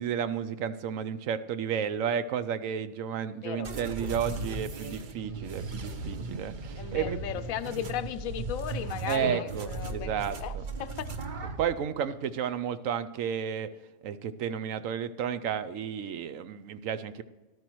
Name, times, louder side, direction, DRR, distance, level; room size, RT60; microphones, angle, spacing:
voice 1, 0.0-7.2 9.1-10.6 11.6-13.7 14.0-17.2, right 8 dB, 70° right, 13 dB, 1.0 m, -32 dB
sound 1, 3.6-11.7, right 3 dB, 45° right, 0.8 m, -37 dB
voice 2, 6.8-11.1, left 10 dB, 75° left, 13 dB, 1.0 m, -36 dB
14.0 x 12.0 x 3.0 m, 1.2 s
omnidirectional pair, 1.5 m